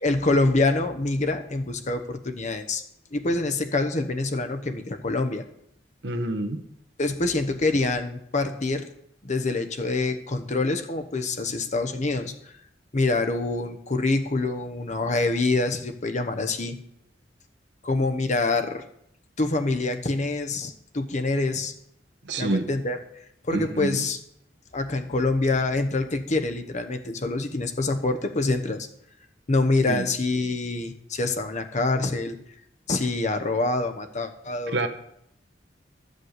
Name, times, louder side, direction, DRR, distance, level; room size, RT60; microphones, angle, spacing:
voice 1, 0.0-2.8 3.1-5.4 7.0-8.9 9.2-12.5 12.9-16.8 17.8-18.8 19.4-21.7 22.4-23.0 23.4-24.2 24.7-28.9 29.5-32.4 32.9-34.8, left 2 dB, 40° left, 7 dB, 0.9 m, -26 dB
voice 2, 6.0-6.6 22.2-22.7 23.5-24.0 29.9-30.1 34.7-34.9, right 2 dB, 70° right, 6 dB, 1.1 m, -27 dB
12.0 x 5.3 x 8.0 m, 0.74 s
head